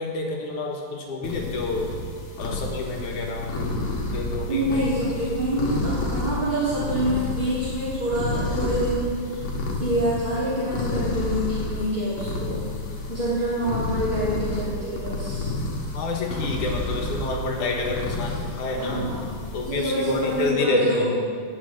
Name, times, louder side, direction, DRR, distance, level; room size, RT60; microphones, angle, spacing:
voice 1, 0.0-1.9 2.4-3.6 4.1-4.9 15.9-19.0 19.5-21.1, left 3 dB, 70° left, 0 dB, 2.9 m, -28 dB
sound 1, 1.2-20.5, left 2 dB, 55° left, 2.6 m, -30 dB
voice 2, 4.5-9.4 9.8-12.6 13.1-15.5 18.7-21.1, right 1 dB, 15° right, -11 dB, 2.9 m, -26 dB
18.5 x 8.8 x 5.1 m, 2.2 s
omnidirectional pair, 3.7 m